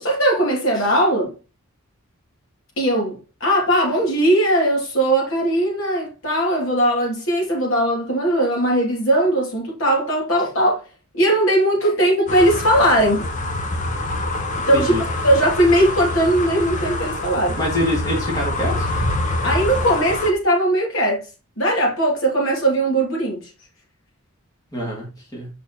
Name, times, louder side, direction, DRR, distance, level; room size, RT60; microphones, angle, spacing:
voice 1, 0.0-1.3 2.8-10.8 11.1-13.2 14.7-17.6 19.4-21.2 21.6-23.4, right 1 dB, 65° left, 2.6 m, -19 dB
sound 1, 12.3-20.3, left 2 dB, 35° left, 0.8 m, -25 dB
voice 2, 14.7-15.0 17.6-18.9 24.7-25.5, equal, 15° left, 2.3 m, -25 dB
6.3 x 5.2 x 3.0 m
head